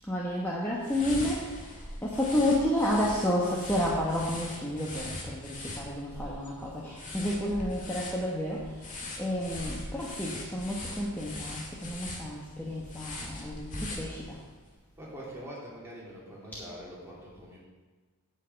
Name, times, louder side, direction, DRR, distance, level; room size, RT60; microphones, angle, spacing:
voice 1, 0.0-14.4, left 1 dB, 10° left, -5 dB, 1.2 m, -31 dB
sound 1, 0.8-14.5, left 2 dB, 35° left, 1.9 m, -41 dB
voice 2, 15.0-17.6, equal, 10° right, -6 dB, 2.8 m, -44 dB
9.2 x 5.7 x 8.2 m, 1.3 s
head